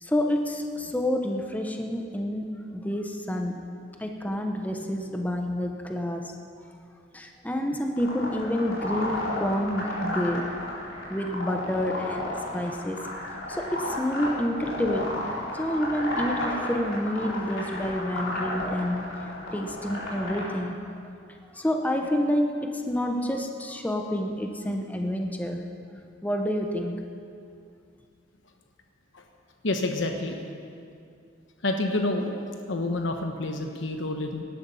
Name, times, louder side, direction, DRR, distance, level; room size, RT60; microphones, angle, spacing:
voice 1, 0.0-3.6 4.0-6.3 7.1-10.5 11.1-13.1 13.5-19.2 19.5-20.8 21.5-25.6 26.2-27.0, equal, 10° left, 3 dB, 0.9 m, -28 dB
sound 1, 8.0-20.5, left 1 dB, 90° left, 4.4 m, -33 dB
voice 2, 29.6-30.4 31.6-32.4 32.7-34.4, left 2 dB, 70° left, 4 dB, 1.1 m, -28 dB
18.0 x 11.5 x 5.5 m, 2.4 s
head